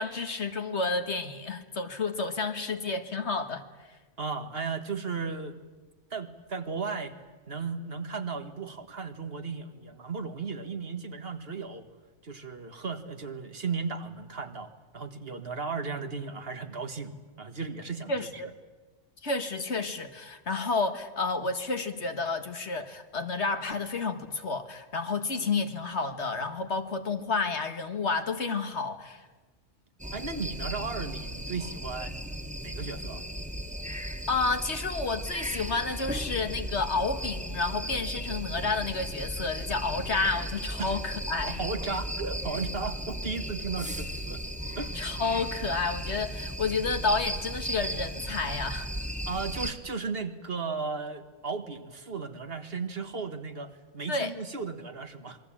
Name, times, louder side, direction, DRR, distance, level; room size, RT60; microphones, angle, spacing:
voice 1, 0.0-3.6 18.1-18.5 19.2-29.3 33.9-34.0 34.3-41.6 44.9-48.9 54.1-54.3, left 4 dB, 60° left, 7 dB, 2.0 m, -30 dB
voice 2, 4.2-5.6 6.1-7.2 7.5-11.9 12.2-18.4 30.1-32.2 32.6-33.2 40.8-40.9 41.4-44.4 44.8-44.9 49.3-55.4, right 4 dB, 50° right, 8 dB, 1.8 m, -35 dB
sound 1, 30.0-49.7, equal, 5° right, 1.7 m, -36 dB
27.0 x 22.5 x 8.7 m, 1.2 s
omnidirectional pair, 1.3 m